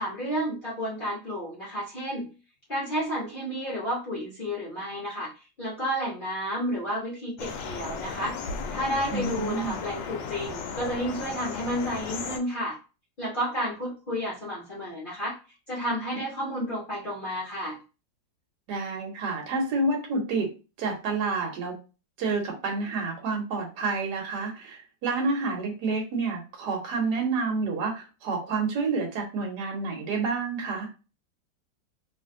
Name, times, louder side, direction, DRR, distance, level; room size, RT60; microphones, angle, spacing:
voice 1, 0.0-2.3 2.7-5.3 5.6-12.8 13.2-15.4 15.7-17.8, equal, 45° left, -6 dB, 0.6 m, -31 dB
sound 1, 7.4-12.4, left 5 dB, 80° left, 1.2 m, -35 dB
voice 2, 9.1-9.8 18.7-20.5 20.8-21.7 22.2-30.9, right 3 dB, 65° right, 0 dB, 1.4 m, -29 dB
3.1 x 2.6 x 2.5 m, 0.32 s
omnidirectional pair, 2.0 m